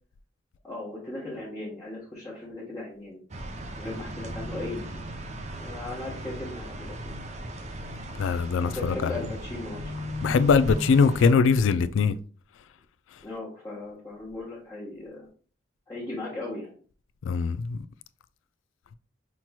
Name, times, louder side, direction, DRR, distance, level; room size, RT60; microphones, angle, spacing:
voice 1, 0.6-3.2 3.8-5.2 5.6-7.2 8.6-10.0 13.2-15.3 15.9-16.7, left 2 dB, 15° left, 1.0 m, -37 dB
sound 1, 3.3-11.3, equal, 35° right, 0.5 m, -36 dB
voice 2, 8.2-9.1 10.2-12.2 17.2-17.8, left 5 dB, 70° left, 0.3 m, -22 dB
5.7 x 3.0 x 2.2 m
head